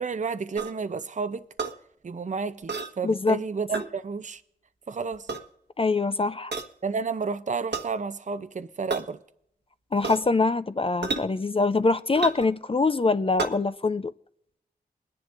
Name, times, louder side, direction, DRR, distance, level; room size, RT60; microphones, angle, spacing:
voice 1, 0.0-1.4 2.0-4.4 4.9-5.3 6.8-9.2, right 5 dB, 45° right, 0.6 m, -31 dB
sound 1, 0.6-0.8 1.6-1.7 2.7-2.9 3.7-3.9 5.1-5.5 6.5-6.7 7.7-7.9 8.9-9.0 10.0-10.3 11.0-11.2 12.1-12.5 13.4-13.5, right 4 dB, 80° right, 1.4 m, -31 dB
voice 2, 3.0-3.4 5.8-6.5 9.9-14.1, left 3 dB, 30° left, 0.5 m, -24 dB
20.5 x 10.5 x 2.6 m
cardioid pair, 45°, 18 cm